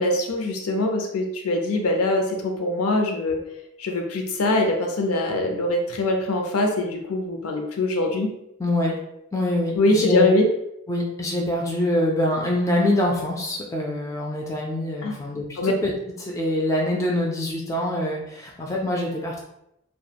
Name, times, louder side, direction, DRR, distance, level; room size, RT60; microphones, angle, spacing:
voice 1, 0.0-3.4 3.8-8.3 9.8-10.5 15.0-15.1 15.6-15.7, left 2 dB, 90° left, 3 dB, 0.5 m, -23 dB
voice 2, 8.6-8.9 9.3-10.3 10.9-15.9 16.2-19.4, left 1 dB, 15° left, -1 dB, 0.3 m, -25 dB
2.3 x 2.1 x 2.8 m, 0.82 s
head